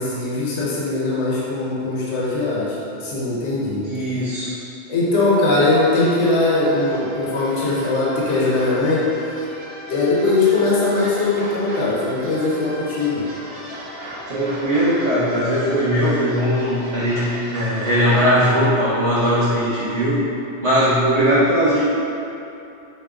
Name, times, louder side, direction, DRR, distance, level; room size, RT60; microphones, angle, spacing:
voice 1, 0.0-4.3 4.9-9.3 9.9-13.3, left 2 dB, 80° left, -6 dB, 1.0 m, -20 dB
voice 2, 3.8-4.5 14.3-20.3 20.6-21.8, equal, 75° right, -11 dB, 1.2 m, -19 dB
sound 1, 5.5-18.2, equal, 50° right, 0.4 m, -37 dB
4.9 x 2.7 x 2.3 m, 2.8 s
omnidirectional pair, 1.2 m